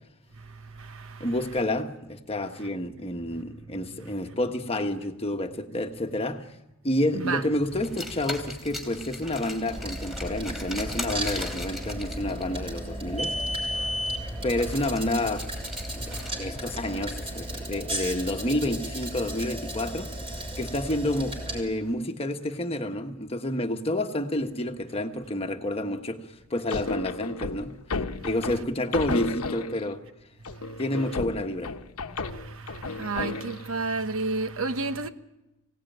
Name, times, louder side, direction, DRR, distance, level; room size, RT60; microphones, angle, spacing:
voice 1, 1.2-6.5 6.8-13.3 14.4-15.5 15.9-20.1 20.6-26.2 26.5-27.7 28.2-30.0 30.8-31.7, left 1 dB, 25° left, 1.3 m, -29 dB
Car, 7.8-17.3, left 1 dB, ahead, 3.3 m, -35 dB
sound 1, 9.7-21.6, right 1 dB, 25° right, 5.6 m, -35 dB
sound 2, 26.7-30.0 30.5-33.7, left 3 dB, 85° left, 1.0 m, -33 dB
voice 2, 33.0-35.1, right 3 dB, 65° right, 1.1 m, -29 dB
24.0 x 17.5 x 9.3 m
head